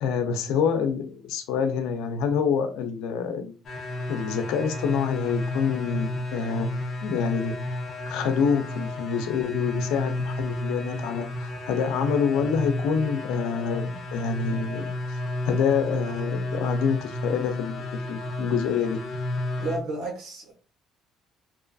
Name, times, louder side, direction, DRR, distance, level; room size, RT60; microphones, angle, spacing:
voice 1, 0.0-3.5 4.1-7.5 8.1-15.2 15.5-19.0, left 6 dB, 85° left, 0.5 m, -27 dB
sound 1, 3.6-19.8, left 1 dB, 45° left, 0.7 m, -32 dB
voice 2, 19.6-20.5, right 2 dB, 80° right, 1.3 m, -32 dB
2.9 x 2.4 x 2.2 m
cardioid pair, 120°, 0 cm